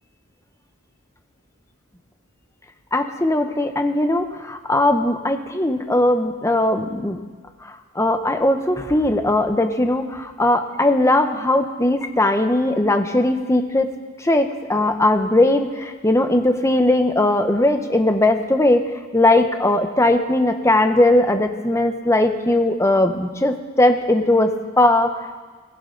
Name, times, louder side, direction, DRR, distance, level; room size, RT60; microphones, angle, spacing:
voice 1, 2.9-7.2 8.0-13.9 14.2-18.8 19.1-25.2, left 1 dB, 15° left, 6 dB, 0.9 m, -19 dB
18.0 x 16.5 x 3.9 m, 1.4 s
head